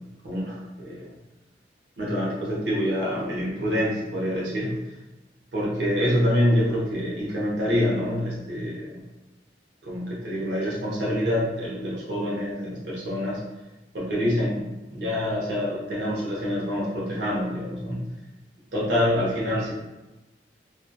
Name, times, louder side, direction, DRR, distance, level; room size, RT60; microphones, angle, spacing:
voice 1, 0.2-1.1 2.0-4.8 5.5-9.0 9.8-13.4 13.9-18.1 18.7-19.7, equal, 70° right, -5 dB, 0.6 m, -26 dB
2.6 x 2.1 x 2.2 m, 1.0 s
head